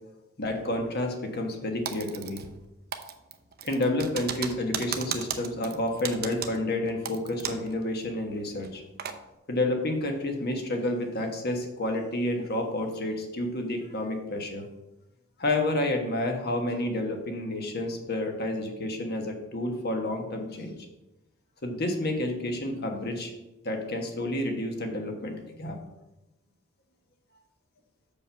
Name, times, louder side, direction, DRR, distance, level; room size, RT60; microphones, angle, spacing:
voice 1, 0.4-2.4 3.6-8.8 9.5-14.6 15.4-20.7 21.6-23.3 23.6-25.8, left 1 dB, 50° left, 4 dB, 1.3 m, -30 dB
Typing, 1.8-2.6 2.9-7.7 8.0-8.1 8.6-9.2, right 8 dB, 45° right, 0.7 m, -35 dB
6.9 x 5.3 x 5.7 m, 0.97 s
head